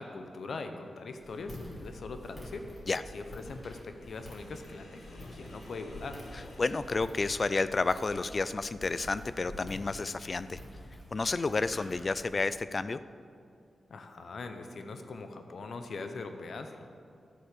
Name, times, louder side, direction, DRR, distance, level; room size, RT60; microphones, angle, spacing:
voice 1, 0.0-6.2 13.9-16.9, left 3 dB, 65° left, 7 dB, 1.0 m, -42 dB
Walk footsteps, 1.2-12.3, left 1 dB, 15° left, 3.2 m, -48 dB
Sink (filling or washing), 3.9-7.9, left 1 dB, 85° left, 2.8 m, -52 dB
voice 2, 6.6-10.6 11.1-13.0, left 3 dB, 35° left, 14 dB, 0.4 m, -30 dB
13.0 x 8.3 x 6.8 m, 2.4 s
wide cardioid pair, 120°, 0 cm